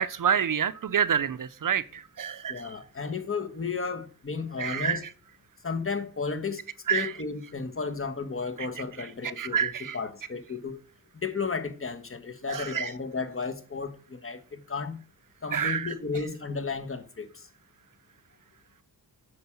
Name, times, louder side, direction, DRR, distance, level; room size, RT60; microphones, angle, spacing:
voice 1, 0.0-2.6 4.6-5.1 6.9-7.1 8.6-8.7 9.0-10.0 12.5-12.9 15.5-15.9, right 8 dB, 55° right, 0.6 m, -28 dB
voice 2, 2.5-5.0 5.6-6.6 6.9-10.8 11.1-15.0 15.4-17.5, left 5 dB, 35° left, 1.2 m, -33 dB
9.5 x 4.8 x 7.1 m
wide cardioid pair, 125°, 39 cm